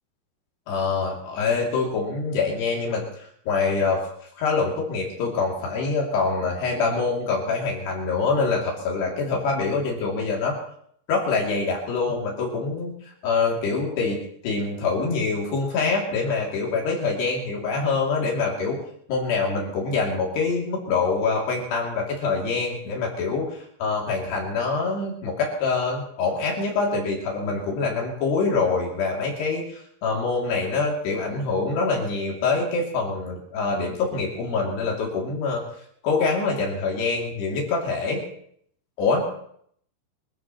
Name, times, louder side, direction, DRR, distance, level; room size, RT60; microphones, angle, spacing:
voice 1, 0.7-4.0 4.4-10.6 11.1-12.9 13.2-18.8 19.1-29.6 30.0-35.6 36.0-38.2 39.0-39.4, left 4 dB, 70° left, -2 dB, 4.8 m, -25 dB
25.0 x 14.0 x 3.1 m, 0.66 s
omnidirectional pair, 5.0 m